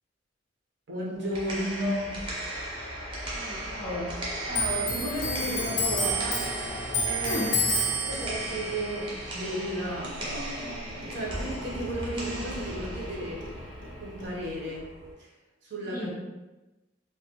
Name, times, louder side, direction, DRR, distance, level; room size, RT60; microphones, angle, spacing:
voice 1, 0.9-2.3 4.5-6.5 7.0-7.4 8.0-13.7 14.0-14.9 15.2-15.3 15.6-16.1, right 1 dB, 65° right, -4 dB, 0.7 m, -34 dB
sound 1, 1.1-15.1, right 1 dB, 25° right, 0.6 m, -37 dB
voice 2, 3.3-4.1 7.3-7.5 15.9-16.1, left 1 dB, 20° left, -4 dB, 0.3 m, -34 dB
Clock, 4.5-11.5 11.8-13.1 13.4-14.3, equal, 70° left, 0.5 m, -31 dB
2.2 x 2.1 x 2.8 m, 1.1 s
head